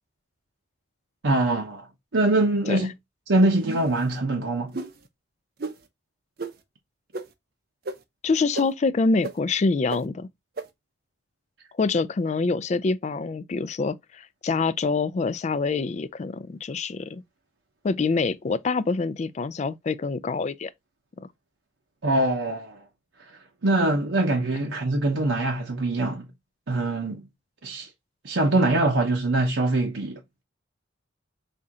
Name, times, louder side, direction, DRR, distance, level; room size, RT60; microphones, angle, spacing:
voice 1, 1.2-1.9 2.1-2.9 3.3-4.7 22.0-22.8 23.6-26.3 26.7-27.2 27.6-27.9 28.2-30.4, right 2 dB, 80° right, 0.8 m, -23 dB
sound 1, 3.6-4.0 4.7-4.9 5.6-5.7 6.4-6.5 7.1-7.2 7.8-7.9 8.5-8.6 9.2-9.3 9.9-10.0 10.6-10.7, right 3 dB, 55° right, 0.6 m, -31 dB
voice 2, 8.2-10.3 11.8-17.2 17.8-20.7 21.2-21.3, left 4 dB, 35° left, 0.3 m, -25 dB
4.3 x 2.7 x 3.6 m
head